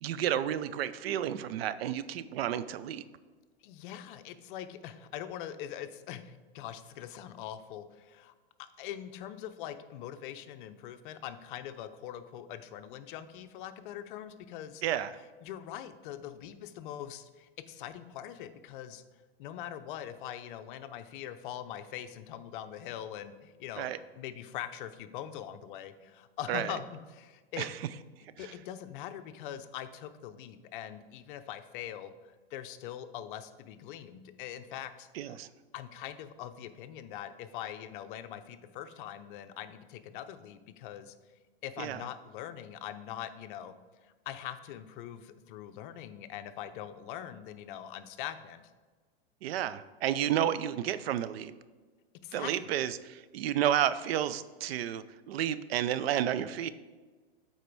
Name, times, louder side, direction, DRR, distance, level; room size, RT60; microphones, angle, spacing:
voice 1, 0.0-3.0 14.8-15.1 23.8-24.0 26.5-26.7 27.6-27.7 35.1-35.5 41.8-42.0 49.4-51.5 52.3-56.7, right 11 dB, 70° right, 14 dB, 0.5 m, -31 dB
voice 2, 3.6-8.3 8.6-14.8 15.4-19.0 19.4-27.7 28.4-35.4 35.7-41.1 41.6-43.7 44.0-48.7 52.2-52.7, left 10 dB, 55° left, 10 dB, 0.6 m, -42 dB
8.3 x 4.3 x 4.6 m, 1.4 s
hypercardioid pair, 130°, 31 cm